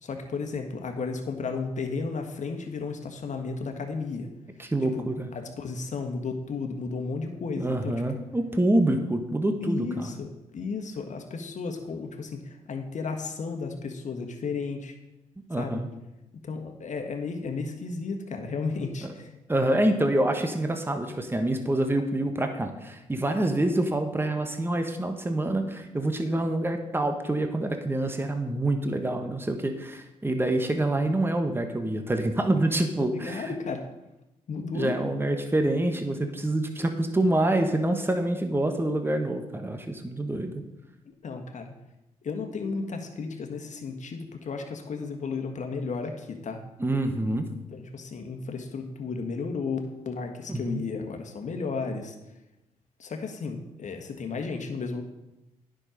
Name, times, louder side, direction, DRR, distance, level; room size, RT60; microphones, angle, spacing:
voice 1, 0.0-4.3 4.9-5.0 5.3-8.2 9.6-14.9 15.5-15.8 16.4-19.3 33.1-33.8 34.5-35.0 41.2-41.7 42.2-46.6 47.7-49.8 50.0-52.1 53.0-55.0, left 4 dB, 55° left, 4 dB, 1.6 m, -33 dB
voice 2, 4.6-5.3 7.6-10.2 15.5-15.9 19.5-33.5 34.7-40.6 46.8-47.4 50.5-50.8, right 1 dB, 15° right, 6 dB, 1.3 m, -26 dB
9.8 x 6.4 x 5.2 m, 0.97 s
supercardioid pair, 50°, 15 cm